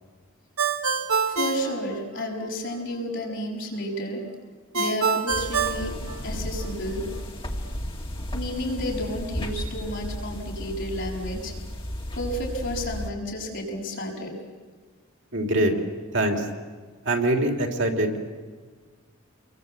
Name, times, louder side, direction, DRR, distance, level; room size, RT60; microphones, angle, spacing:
Ringtone, 0.6-2.5 4.7-6.7, right 5 dB, 80° right, 1.7 m, -26 dB
voice 1, 1.2-4.2 4.7-5.9 6.2-7.0 8.3-11.5 12.1-14.4, equal, 55° left, -1 dB, 6.9 m, -31 dB
sound 1, 5.3-13.1, equal, 25° left, 2.1 m, -34 dB
voice 2, 15.3-15.7 16.1-16.4 17.0-18.2, right 1 dB, 55° right, 3 dB, 3.3 m, -23 dB
29.5 x 23.0 x 8.3 m, 1.5 s
head